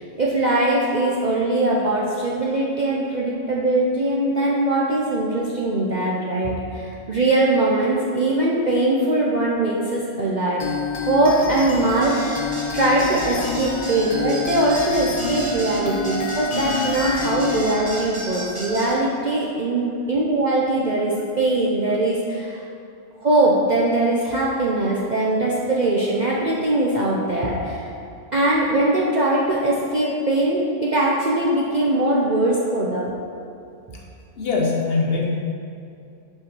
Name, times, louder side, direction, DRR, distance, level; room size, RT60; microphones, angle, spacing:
voice 1, 0.0-10.6 11.1-12.3 12.7-22.6 23.2-27.9 28.3-33.1, right 2 dB, 45° right, -5 dB, 0.6 m, -21 dB
sound 1, 10.6-17.6, left 4 dB, 75° left, 0.3 m, -28 dB
sound 2, 12.0-18.9, right 1 dB, 15° right, 1.1 m, -33 dB
voice 2, 34.4-35.3, left 4 dB, 50° left, -2 dB, 0.9 m, -22 dB
5.8 x 4.6 x 6.0 m, 2.6 s
omnidirectional pair, 1.5 m